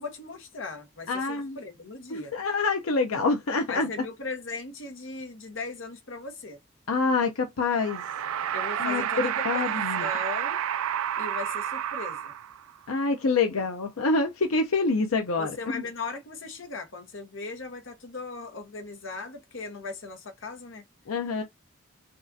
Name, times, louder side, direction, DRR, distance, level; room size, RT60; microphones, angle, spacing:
voice 1, 0.0-2.3 3.7-6.6 8.5-10.6 11.2-12.3 15.4-20.8, left 3 dB, 65° left, 1.1 m, -38 dB
voice 2, 1.1-1.6 2.1-3.9 6.9-8.0 8.8-10.1 12.9-15.9 21.1-21.4, left 3 dB, 90° left, 0.6 m, -26 dB
sound 1, 7.7-12.8, right 10 dB, 85° right, 0.3 m, -30 dB
5.2 x 2.5 x 2.6 m
head